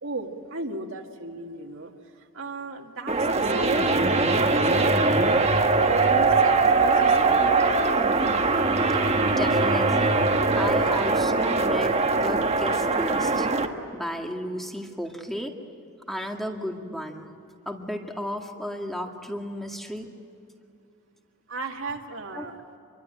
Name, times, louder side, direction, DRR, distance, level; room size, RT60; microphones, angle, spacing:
voice 1, 0.0-5.1 5.8-7.7 21.5-22.6, right 2 dB, 60° right, 1 dB, 2.2 m, -35 dB
sound 1, 3.1-13.7, right 3 dB, 30° right, 1.5 m, -21 dB
voice 2, 9.2-10.2 10.6-13.5 13.9-15.5 16.1-17.3 17.7-20.1 22.3-22.5, equal, ahead, 2 dB, 2.1 m, -33 dB
27.0 x 23.5 x 9.0 m, 2.6 s
head